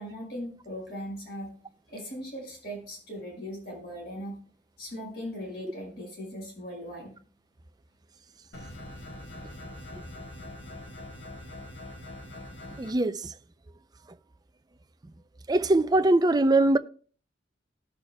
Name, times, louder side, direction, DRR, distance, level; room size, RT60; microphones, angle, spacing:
voice 1, 0.0-1.5 1.9-4.4 4.8-7.2, equal, 60° left, 5.6 m, -39 dB
sound 1, 8.5-12.9, left 1 dB, 80° left, 1.5 m, -43 dB
voice 2, 12.8-13.3 15.5-16.8, right 2 dB, 20° right, 0.4 m, -22 dB
19.0 x 6.8 x 2.3 m
head